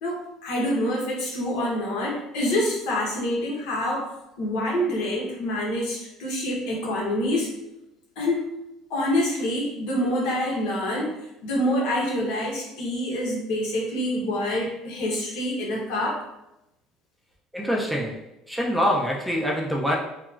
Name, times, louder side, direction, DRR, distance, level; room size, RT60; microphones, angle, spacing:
voice 1, 0.0-4.1 4.4-7.5 8.2-8.5 8.9-11.1 11.4-16.2, left 1 dB, 80° left, -3 dB, 0.9 m, -26 dB
voice 2, 17.5-20.0, equal, ahead, -2 dB, 0.3 m, -25 dB
2.9 x 2.3 x 2.3 m, 0.92 s
cardioid pair, 165°, 0 cm